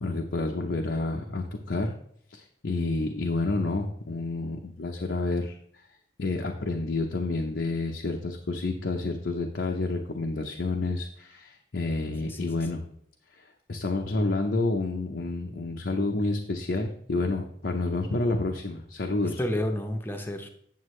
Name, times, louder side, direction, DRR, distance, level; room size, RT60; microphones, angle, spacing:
voice 1, 0.0-1.9 2.3-5.6 6.2-12.8 13.4-19.4, left 2 dB, 75° left, 2 dB, 0.8 m, -29 dB
voice 2, 12.1-12.6 19.2-20.5, left 1 dB, 10° left, 5 dB, 0.7 m, -31 dB
9.4 x 7.1 x 3.2 m, 0.66 s
head